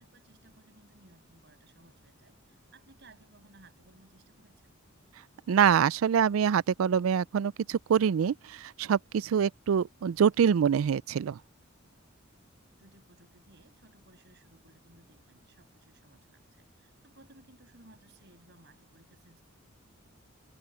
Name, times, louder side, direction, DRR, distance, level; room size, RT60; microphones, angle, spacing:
voice 1, 0.0-4.8 12.8-19.4, right 2 dB, 60° right, 7.0 m, -60 dB
voice 2, 5.5-11.4, right 7 dB, 85° right, 0.4 m, -25 dB
head